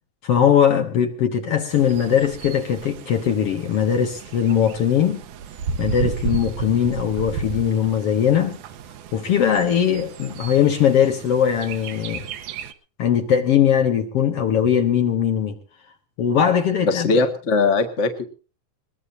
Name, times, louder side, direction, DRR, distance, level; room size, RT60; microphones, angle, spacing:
voice 1, 0.2-5.2 5.8-8.6 9.1-12.3 13.0-15.6 16.2-17.1, left 8 dB, 60° left, 1.9 m, -20 dB
Bird, 1.7-12.7, right 6 dB, 80° right, 2.3 m, -33 dB
voice 2, 16.8-18.2, left 3 dB, 30° left, 1.3 m, -20 dB
21.5 x 20.0 x 2.7 m
omnidirectional pair, 3.4 m